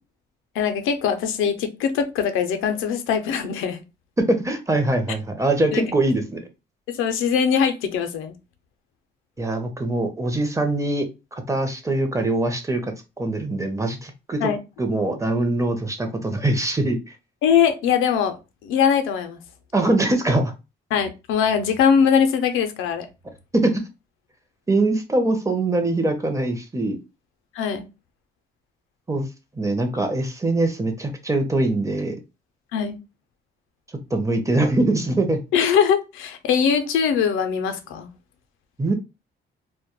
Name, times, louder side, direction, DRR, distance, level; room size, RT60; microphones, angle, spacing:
voice 1, 0.6-3.8 5.7-5.8 6.9-8.3 14.4-14.6 17.4-18.4 18.6-19.4 20.9-23.1 27.5-27.8 32.7-33.0 35.5-38.1, left 7 dB, 90° left, 0.5 m, -21 dB
voice 2, 4.2-6.4 9.4-11.1 11.3-14.5 14.8-17.1 19.7-20.5 23.5-23.8 24.7-27.0 29.1-29.3 29.6-32.2 34.1-35.4 38.8-38.9, right 2 dB, 15° right, 0.5 m, -22 dB
2.2 x 2.1 x 2.9 m
cardioid pair, 90°, 20 cm